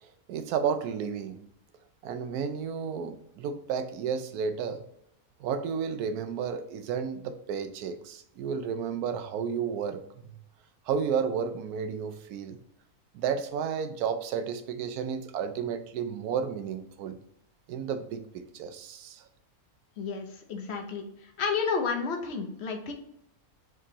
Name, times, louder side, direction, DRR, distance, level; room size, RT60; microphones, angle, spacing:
voice 1, 0.0-1.4 2.0-4.8 5.4-10.0 10.9-12.6 13.1-17.2 17.7-19.3, right 7 dB, 85° right, 9 dB, 1.1 m, -32 dB
voice 2, 20.0-22.9, left 5 dB, 55° left, 4 dB, 0.9 m, -31 dB
4.7 x 3.6 x 2.9 m, 0.76 s
omnidirectional pair, 1.6 m